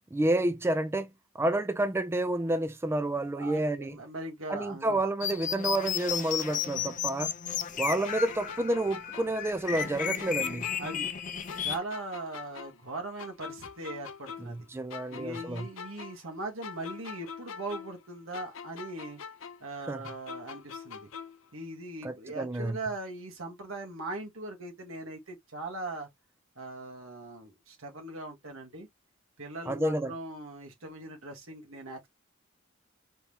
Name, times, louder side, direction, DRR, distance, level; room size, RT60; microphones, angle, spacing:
voice 1, 0.1-1.1 1.3-4.0 4.5-7.3 7.8-10.7 14.4-15.7 19.9-20.0 22.0-22.8 29.7-30.1, right 1 dB, 10° right, 0.3 m, -29 dB
voice 2, 3.3-5.0 10.8-11.1 11.6-14.7 15.1-19.2 19.6-21.1 21.5-26.1 26.6-28.9 29.4-32.1, right 2 dB, 85° right, 1.7 m, -40 dB
sound 1, 5.2-11.8, left 8 dB, 40° left, 0.6 m, -34 dB
sound 2, 8.0-11.2 11.5-14.6 14.9-18.1 18.3-21.5, left 6 dB, 80° left, 0.6 m, -44 dB
4.3 x 3.5 x 2.8 m
head